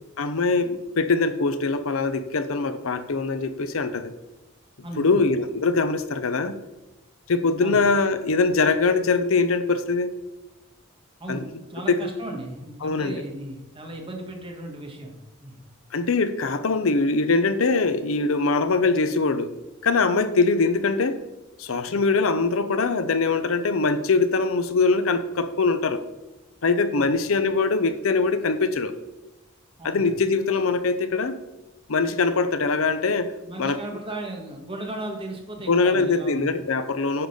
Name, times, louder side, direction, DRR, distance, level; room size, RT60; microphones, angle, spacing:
voice 1, 0.2-4.1 5.0-6.6 7.3-10.1 11.3-11.4 11.9-12.0 12.8-13.2 15.9-19.5 19.8-21.2 21.6-26.0 26.6-28.9 29.8-31.4 31.9-33.3 33.6-33.8 35.7-37.3, left 4 dB, 80° left, 11 dB, 0.7 m, -22 dB
voice 2, 4.8-5.2 7.6-7.8 11.2-15.6 21.9-22.0 26.9-27.2 29.8-30.2 33.5-36.5, right 1 dB, 25° right, 1 dB, 1.6 m, -36 dB
9.9 x 4.0 x 6.6 m, 0.99 s
head